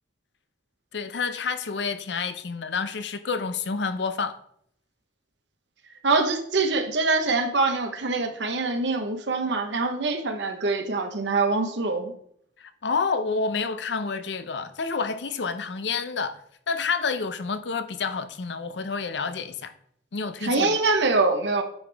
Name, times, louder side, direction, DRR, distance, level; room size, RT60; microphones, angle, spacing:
voice 1, 0.9-4.4 12.6-16.4 16.7-19.7 20.1-20.8, left 4 dB, 75° left, 0.6 m, -29 dB
voice 2, 6.0-12.1 20.4-21.6, right 3 dB, 75° right, 1.0 m, -24 dB
9.2 x 5.2 x 3.4 m
head